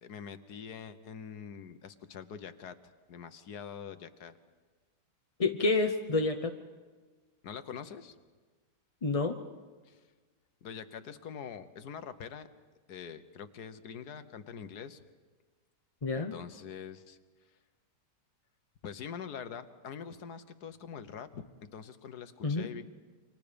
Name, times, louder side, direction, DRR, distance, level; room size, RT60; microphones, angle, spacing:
voice 1, 0.0-2.8 3.1-4.4 7.4-8.2 9.8-10.0 10.6-12.5 12.9-15.0 16.1-17.2 18.8-21.4 21.7-22.8, left 7 dB, 65° left, 10 dB, 1.6 m, -44 dB
voice 2, 5.4-6.5 9.0-9.4 16.0-16.3 22.4-22.7, left 3 dB, 30° left, 6 dB, 0.7 m, -28 dB
29.0 x 26.0 x 5.2 m, 1.4 s
omnidirectional pair, 1.8 m